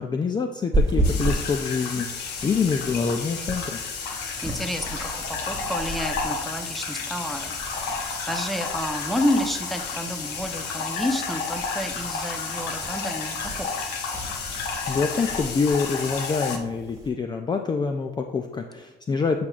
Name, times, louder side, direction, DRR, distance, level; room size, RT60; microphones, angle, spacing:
voice 1, 0.0-3.8 14.9-19.5, left 5 dB, 25° left, 5 dB, 0.4 m, -26 dB
sound 1, 0.7-17.1, right 1 dB, 20° right, 1.7 m, -34 dB
sound 2, 1.0-16.6, left 5 dB, 85° left, 0.9 m, -31 dB
voice 2, 4.4-7.9 8.3-13.9, equal, ahead, 5 dB, 0.8 m, -30 dB
8.5 x 6.1 x 2.4 m, 1.0 s
cardioid pair, 110°, 17 cm